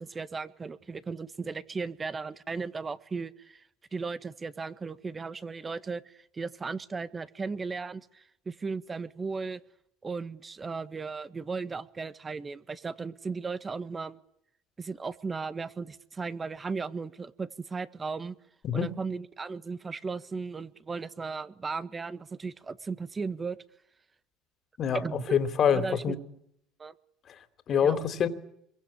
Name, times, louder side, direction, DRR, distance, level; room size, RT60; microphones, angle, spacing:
voice 1, 0.0-3.6 3.9-9.6 10.0-14.2 14.8-18.3 18.7-23.6 24.9-25.2 25.7-26.1 26.8-26.9 27.8-28.0, right 4 dB, 25° right, 1.6 m, -36 dB
voice 2, 25.3-26.2 27.7-28.3, left 8 dB, 45° left, 3.3 m, -25 dB
26.5 x 23.0 x 8.9 m
supercardioid pair, 95°, 0 cm